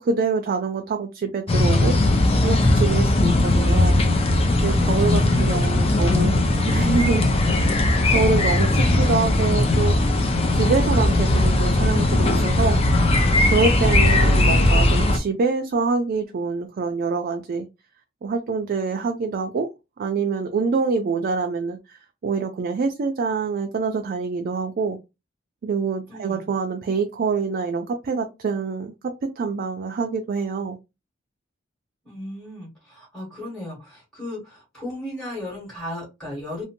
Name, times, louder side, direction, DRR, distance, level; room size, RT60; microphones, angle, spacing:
voice 1, 0.0-2.0 2.4-4.0 4.6-6.3 6.7-7.3 7.8-10.0 10.5-12.8 13.5-17.7 18.2-19.7 20.0-25.0 25.6-28.9 29.2-30.8, right 4 dB, 50° right, 0.3 m, -25 dB
sound 1, 1.5-15.2, left 2 dB, 30° left, 0.5 m, -19 dB
voice 2, 4.7-7.2 26.1-26.5 32.0-36.6, left 1 dB, 5° left, 1.2 m, -36 dB
2.6 x 2.1 x 2.8 m
head